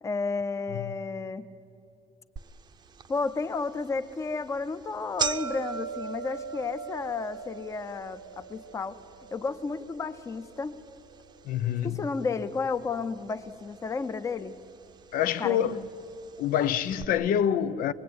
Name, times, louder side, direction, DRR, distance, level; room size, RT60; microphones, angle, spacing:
voice 1, 0.0-1.5 3.1-9.0 9.3-10.8 11.8-14.6 15.4-15.6, left 4 dB, 20° left, 0.7 m, -32 dB
sound 1, 2.4-2.5 3.0-3.1 3.9-4.1 4.4-4.6 4.8-13.0 13.3-14.0 14.8-14.9 15.9-16.0 16.2-16.3 16.9-17.0, right 6 dB, 30° right, 0.7 m, -38 dB
voice 2, 11.4-12.0 15.1-15.8 16.4-17.9, left 9 dB, 85° left, 0.9 m, -26 dB
25.0 x 22.0 x 9.5 m
cardioid pair, 175°, 14 cm